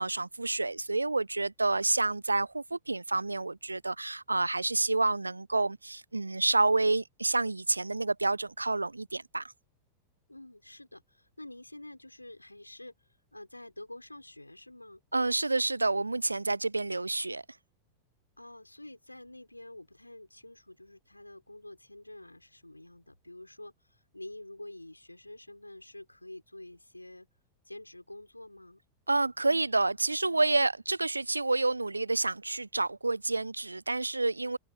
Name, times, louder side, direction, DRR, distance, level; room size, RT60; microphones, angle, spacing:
voice 1, 0.0-9.5 15.1-17.4 29.1-34.6, right 2 dB, 80° right, 0.4 m, -29 dB
voice 2, 10.3-12.9 13.3-15.0 18.4-27.3 27.6-28.8, left 1 dB, 85° left, 4.7 m, -48 dB
figure-of-eight pair, 90°, 0 cm